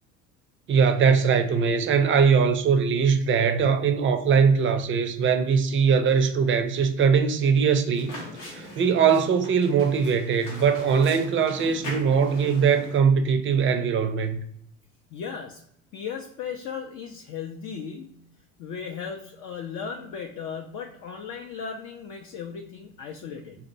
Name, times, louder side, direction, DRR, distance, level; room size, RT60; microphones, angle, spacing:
voice 1, 0.7-8.1 8.5-14.4, right 6 dB, 35° right, 0.4 m, -21 dB
sound 1, 8.0-13.0, left 1 dB, 85° left, 0.7 m, -40 dB
voice 2, 15.1-15.6 15.9-18.1 18.6-23.6, left 6 dB, 55° left, 0.5 m, -36 dB
2.7 x 2.2 x 2.6 m
hypercardioid pair, 65°, 38 cm